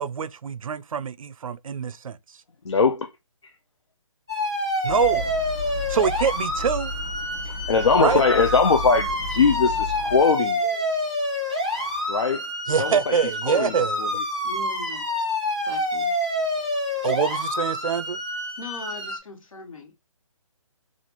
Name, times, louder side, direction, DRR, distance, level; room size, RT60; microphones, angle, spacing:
voice 1, 0.0-2.2 4.8-5.3 5.9-6.9 8.0-8.2 12.7-14.0 17.0-18.2, right 7 dB, 75° right, 0.4 m, -25 dB
voice 2, 2.6-3.1 3.4-3.5 7.4-11.1 12.1-12.5 12.8-13.2 13.5-14.2, left 5 dB, 55° left, 0.4 m, -22 dB
sound 1, 4.3-19.2, left 1 dB, 10° right, 0.4 m, -27 dB
sound 2, 4.9-10.2, left 2 dB, 30° left, 1.4 m, -34 dB
voice 3, 14.4-15.1 15.7-16.1 18.6-19.9, left 3 dB, 70° left, 1.4 m, -39 dB
4.1 x 2.4 x 2.9 m
hypercardioid pair, 180°, 18 cm